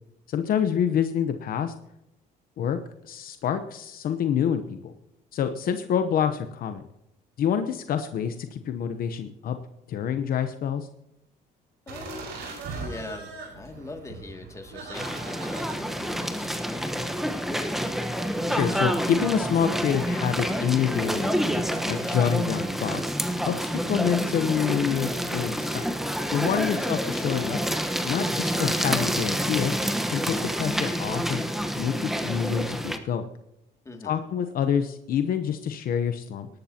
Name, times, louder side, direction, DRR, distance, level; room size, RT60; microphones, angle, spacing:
voice 1, 0.3-1.7 2.6-2.8 3.0-4.9 5.3-6.8 7.4-9.6 9.9-10.9 18.5-21.6 21.9-23.0 23.4-25.8 26.3-27.6 28.0-29.8 30.1-31.4 31.7-33.2 34.0-36.5, left 8 dB, 60° left, 8 dB, 0.9 m, -27 dB
voice 2, 11.9-12.3 12.7-17.2 26.4-26.8 33.8-34.1, left 2 dB, 20° left, 3 dB, 2.4 m, -42 dB
sound 1, 11.9-17.0, right 4 dB, 85° right, 5.4 m, -40 dB
sound 2, 14.9-33.0, equal, ahead, 1.2 m, -28 dB
18.5 x 12.0 x 2.9 m, 0.83 s
cardioid pair, 110°, 17 cm